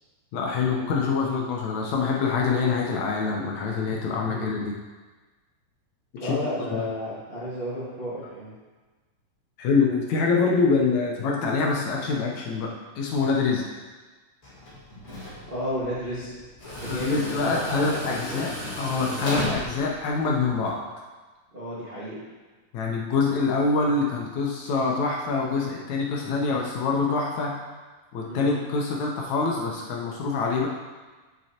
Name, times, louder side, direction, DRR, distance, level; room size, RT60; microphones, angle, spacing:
voice 1, 0.3-4.8 6.2-6.4 6.7-6.8 9.6-13.7 16.9-18.5 18.8-20.8 22.7-27.5 28.1-30.7, left 4 dB, 70° left, -2 dB, 1.9 m, -25 dB
voice 2, 6.2-8.5 15.5-16.3 16.8-18.4 21.5-22.2 28.3-28.5, equal, 90° right, -10 dB, 0.5 m, -32 dB
Tools, 14.4-20.7, left 1 dB, 30° left, 1.7 m, -35 dB
7.6 x 7.5 x 2.8 m, 1.3 s
omnidirectional pair, 3.8 m